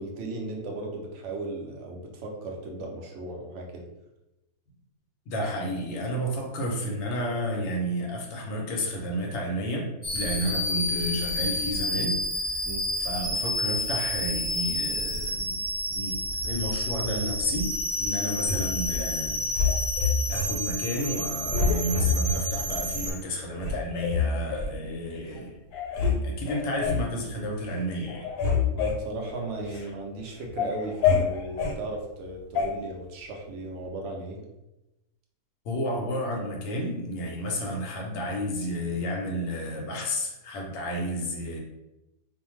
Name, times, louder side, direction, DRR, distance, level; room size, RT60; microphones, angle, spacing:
voice 1, 0.0-3.9 12.6-12.9 28.7-34.5, right 2 dB, 65° right, 0 dB, 0.7 m, -36 dB
voice 2, 5.3-12.2 12.5-12.6 13.0-15.6 15.9-17.7 18.0-19.8 20.3-25.6 25.9-28.3 35.6-41.6, equal, 60° left, 0 dB, 0.7 m, -31 dB
sound 1, 10.0-23.1, equal, 15° right, 1.2 m, -30 dB
sound 2, 18.4-19.1 19.5-20.5 20.9-21.2 21.5-22.4 23.0-23.1 23.6-24.7 25.3-25.4 25.7-26.2 26.5-27.1 27.5-27.8 28.1-29.9 30.3-31.8 32.6-32.7, left 5 dB, 80° left, 1.1 m, -27 dB
2.6 x 2.1 x 3.0 m, 0.97 s
omnidirectional pair, 1.6 m